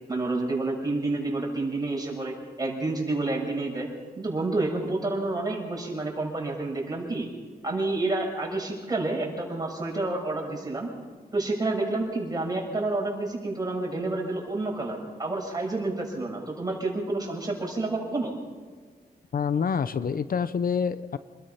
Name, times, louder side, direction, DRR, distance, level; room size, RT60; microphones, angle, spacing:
voice 1, 0.1-3.9 4.2-7.3 7.6-10.9 11.3-18.3, right 2 dB, 25° right, -1 dB, 6.5 m, -29 dB
voice 2, 19.3-21.2, left 6 dB, 60° left, 13 dB, 0.8 m, -27 dB
28.0 x 20.5 x 5.8 m, 1.5 s
wide cardioid pair, 145°, 17 cm